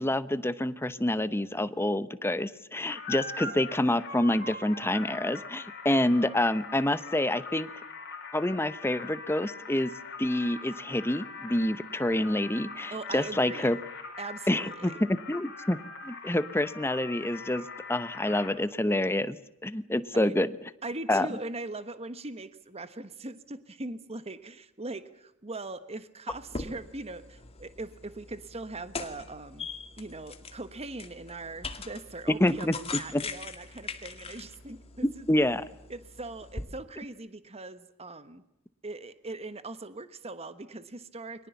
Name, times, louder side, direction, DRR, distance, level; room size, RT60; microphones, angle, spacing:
voice 1, 0.0-7.7 8.3-9.9 10.2-13.8 14.5-15.8 16.0-19.4 19.6-20.5 21.1-21.3 32.3-32.7 33.1-33.2 35.3-35.6, left 1 dB, 10° left, 14 dB, 0.9 m, -27 dB
sound 1, 2.9-18.5, left 4 dB, 50° left, 5.8 m, -42 dB
voice 2, 12.9-13.8 14.2-15.0 20.1-20.3 20.8-29.7 30.0-35.3 35.9-38.4 38.8-41.5, right 2 dB, 30° right, 12 dB, 1.3 m, -40 dB
sound 2, 26.3-36.7, left 4 dB, 25° left, 2.2 m, -42 dB
30.0 x 23.5 x 7.1 m, 0.81 s
head